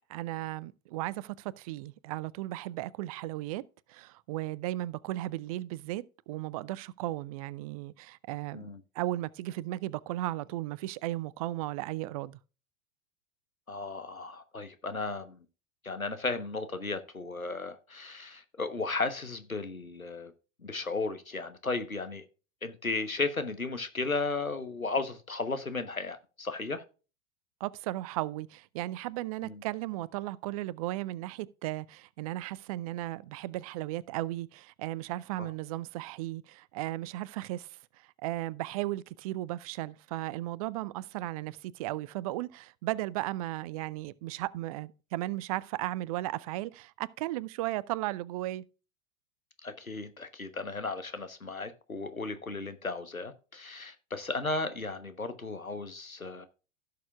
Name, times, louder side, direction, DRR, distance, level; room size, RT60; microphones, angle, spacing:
voice 1, 0.1-3.6 3.9-8.6 9.0-12.4 27.6-48.6, right 16 dB, 30° right, 0.3 m, -35 dB
voice 2, 13.7-15.4 15.8-20.3 20.6-22.2 22.6-26.8 29.4-29.6 35.4-35.5 49.6-56.5, left 3 dB, 90° left, 1.1 m, -35 dB
16.5 x 6.6 x 2.4 m
figure-of-eight pair, 85°, 40 cm